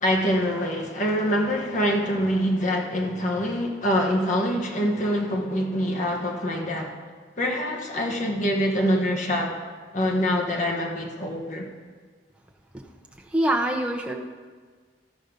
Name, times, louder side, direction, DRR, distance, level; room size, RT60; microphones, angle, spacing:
voice 1, 0.0-6.9 7.4-9.6 9.9-11.7, equal, 40° left, 0 dB, 1.2 m, -25 dB
voice 2, 13.3-14.1, right 1 dB, 5° right, 0 dB, 0.8 m, -24 dB
14.0 x 5.4 x 5.2 m, 1.5 s
head